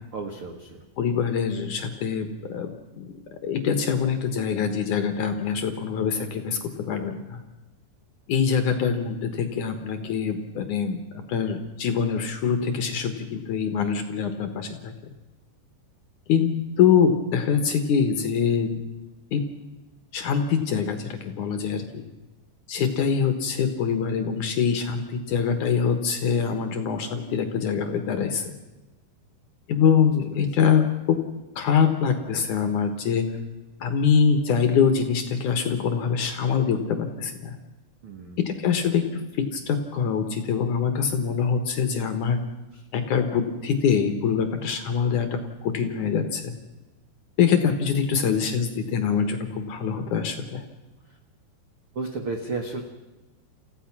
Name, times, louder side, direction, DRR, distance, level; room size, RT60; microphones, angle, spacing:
voice 1, 0.1-0.9 30.4-30.5 38.0-38.4 42.7-42.8 51.9-52.8, right 3 dB, 75° right, 3 dB, 1.2 m, -33 dB
voice 2, 1.0-3.1 3.4-6.6 6.9-7.4 8.3-11.0 11.3-14.9 16.3-18.7 19.3-19.4 20.1-22.1 22.7-28.5 29.7-31.2 31.6-33.3 33.8-37.6 38.5-39.0 39.3-42.4 42.9-46.5 47.4-50.6, left 7 dB, 65° left, 7 dB, 2.1 m, -24 dB
29.0 x 15.5 x 6.0 m, 1.1 s
omnidirectional pair, 5.0 m